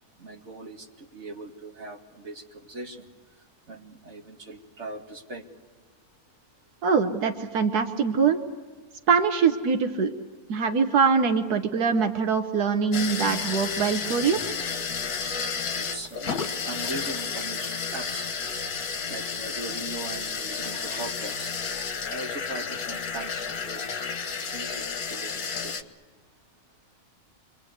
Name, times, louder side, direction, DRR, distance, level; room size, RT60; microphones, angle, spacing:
voice 1, 0.2-3.1 3.7-5.4 14.4-14.5 15.2-15.4 15.7-18.3 18.5-18.6 19.1-21.6 22.1-23.8 24.5-25.7, right 2 dB, 50° right, 1 dB, 2.6 m, -40 dB
voice 2, 6.8-8.4 9.1-10.1 10.5-14.4, right 5 dB, 85° right, 6 dB, 1.6 m, -23 dB
sound 1, 12.9-25.8, left 5 dB, 75° left, 1.8 m, -32 dB
28.5 x 23.5 x 8.1 m, 1.5 s
omnidirectional pair, 1.6 m